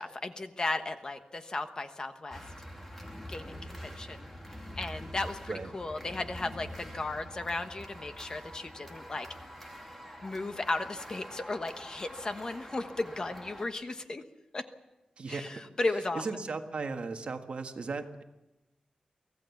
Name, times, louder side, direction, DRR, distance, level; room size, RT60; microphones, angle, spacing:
voice 1, 0.0-2.4 3.3-4.3 4.8-9.3 10.2-14.2 14.5-14.6 15.3-16.2, left 2 dB, 30° left, 8 dB, 1.1 m, -35 dB
sound 1, 2.3-13.7, equal, 10° left, 2.5 m, -45 dB
voice 2, 15.2-15.5 16.1-18.2, right 4 dB, 50° right, 5 dB, 1.5 m, -36 dB
24.5 x 16.0 x 7.2 m, 1.0 s
wide cardioid pair, 175°, 2 cm